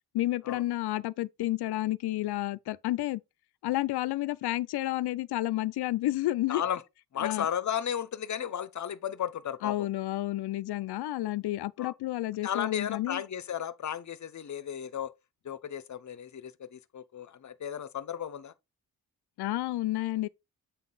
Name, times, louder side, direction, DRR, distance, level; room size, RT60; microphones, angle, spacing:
voice 1, 0.1-3.2 3.6-6.6 7.2-7.5 9.6-13.2 19.4-20.3, left 16 dB, 85° left, 0.5 m, -30 dB
voice 2, 6.5-6.8 7.1-9.9 11.8-11.9 12.4-15.1 15.4-18.5, left 9 dB, 50° left, 0.8 m, -34 dB
8.0 x 3.9 x 3.9 m
cardioid pair, 105°, 39 cm